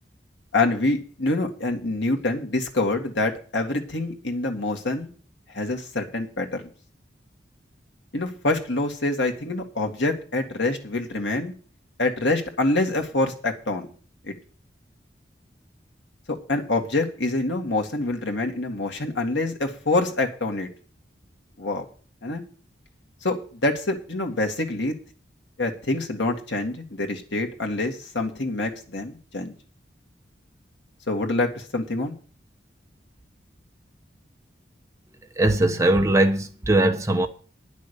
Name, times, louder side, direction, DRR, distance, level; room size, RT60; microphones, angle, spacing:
voice 1, 0.5-5.1 5.5-6.6 8.1-11.5 12.0-13.9 14.2-14.3 16.5-20.7 21.6-21.9 22.2-22.4 23.2-24.9 25.6-29.5 31.1-32.1, left 2 dB, 90° left, 2.0 m, -26 dB
voice 2, 35.3-37.3, right 1 dB, 15° right, 1.0 m, -20 dB
10.5 x 6.2 x 8.2 m
head